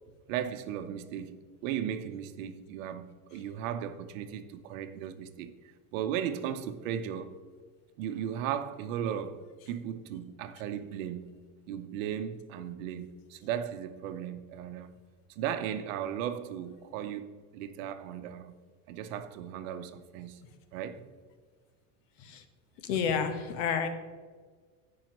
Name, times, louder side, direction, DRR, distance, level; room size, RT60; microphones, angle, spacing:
voice 1, 0.3-7.3 8.0-11.4 11.7-14.9 15.3-17.3 17.5-18.5 18.9-20.4 20.7-21.0, right 9 dB, 75° right, 0.9 m, -36 dB
voice 2, 22.8-23.9, left 6 dB, 70° left, 1.2 m, -30 dB
17.0 x 5.6 x 3.0 m
cardioid pair, 155°, 39 cm